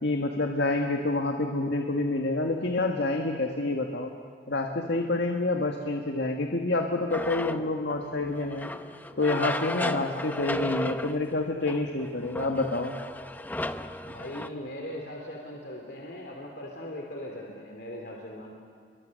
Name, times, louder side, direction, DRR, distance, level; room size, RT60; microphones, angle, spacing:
voice 1, 0.0-4.1 4.5-8.7 9.2-12.9, left 2 dB, 85° left, 2 dB, 1.7 m, -28 dB
sound 1, 7.1-14.5, left 1 dB, 10° left, 0.7 m, -35 dB
voice 2, 14.1-18.5, left 1 dB, 65° left, 0 dB, 2.9 m, -39 dB
29.5 x 23.0 x 6.5 m, 2.1 s
head